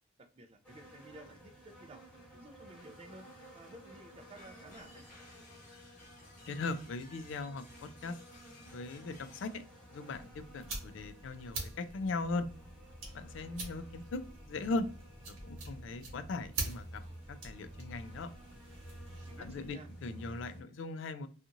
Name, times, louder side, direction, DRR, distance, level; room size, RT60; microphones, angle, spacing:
voice 1, 0.2-2.0 2.3-3.3 3.5-5.1 19.2-19.9, right 1 dB, 30° right, 6 dB, 0.4 m, -53 dB
sound 1, 0.6-20.6, equal, 5° left, 1.1 m, -53 dB
sound 2, 4.4-9.6, left 2 dB, 40° left, 0.9 m, -58 dB
voice 2, 6.5-8.1 8.7-9.6 9.9-12.5 13.1-14.2 14.5-14.9 15.4-17.0 17.3-18.3 19.4-21.3, left 3 dB, 65° left, 11 dB, 0.3 m, -39 dB
sound 3, 10.0-19.7, right 3 dB, 75° right, 1.1 m, -45 dB
2.8 x 2.4 x 2.5 m, 0.39 s
head